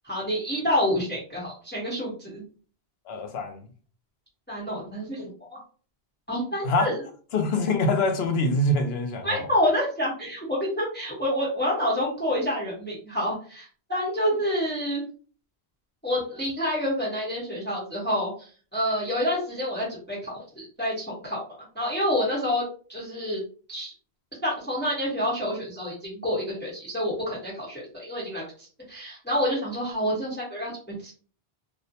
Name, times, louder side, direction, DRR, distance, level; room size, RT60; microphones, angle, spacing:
voice 1, 0.0-2.4 4.5-5.6 6.3-7.0 9.2-15.0 16.0-21.4 21.7-22.6 22.9-23.4 23.7-23.9 24.4-30.7 31.0-31.1, equal, 10° left, 0.9 m, -28 dB
voice 2, 3.1-3.6 6.6-6.9 7.3-9.4, left 2 dB, 75° left, 0.8 m, -24 dB
2.4 x 2.1 x 2.7 m
omnidirectional pair, 1.1 m